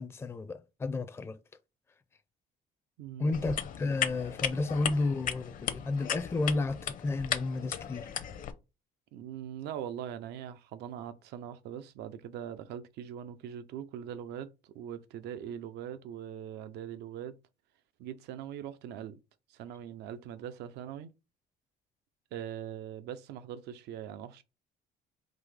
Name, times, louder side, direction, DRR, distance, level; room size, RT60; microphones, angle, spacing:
voice 1, 0.0-1.4 3.2-8.1, left 3 dB, 15° left, 0.4 m, -32 dB
voice 2, 3.0-3.4 9.1-17.4 18.0-19.2 19.5-21.1 22.3-24.4, right 9 dB, 80° right, 0.6 m, -41 dB
sound 1, 3.3-8.5, left 9 dB, 55° left, 0.6 m, -36 dB
4.0 x 2.7 x 4.7 m
cardioid pair, 110°, 17 cm